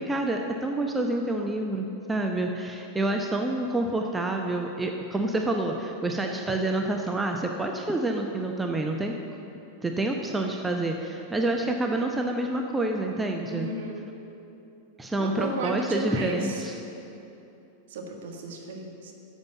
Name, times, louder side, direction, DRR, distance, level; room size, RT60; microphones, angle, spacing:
voice 1, 0.0-9.1 9.8-13.7 15.0-16.8, right 2 dB, 10° right, 2 dB, 0.8 m, -28 dB
voice 2, 13.4-14.1 15.2-16.6 17.9-19.1, right 2 dB, 55° right, 1 dB, 1.7 m, -34 dB
10.5 x 7.4 x 8.2 m, 2.9 s
figure-of-eight pair, 90°, 0 cm